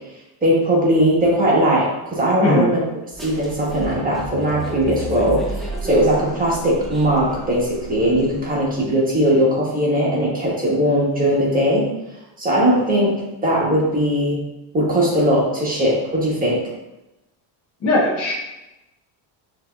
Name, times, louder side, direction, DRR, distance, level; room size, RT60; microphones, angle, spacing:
voice 1, 0.4-2.8 3.2-11.9 12.4-13.1 13.4-14.4 14.7-16.6, equal, 20° right, -4 dB, 1.2 m, -19 dB
voice 2, 2.4-2.7 17.8-18.3, left 2 dB, 35° left, -4 dB, 0.7 m, -18 dB
sound 1, 3.1-8.7, right 1 dB, ahead, 0.5 m, -32 dB
6.0 x 2.9 x 2.3 m, 0.96 s
cardioid pair, 125°, 46 cm